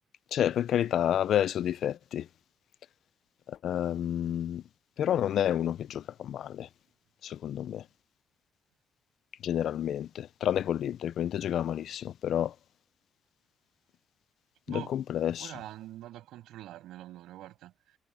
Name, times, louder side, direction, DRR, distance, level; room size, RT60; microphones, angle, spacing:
voice 1, 0.3-2.3 3.5-4.6 5.0-6.7 7.2-7.9 9.4-12.5 14.7-15.5, left 10 dB, 70° left, 0.5 m, -29 dB
voice 2, 14.7-15.0 15.4-18.0, right 14 dB, 85° right, 7.5 m, -45 dB
cardioid pair, 90°, 0 cm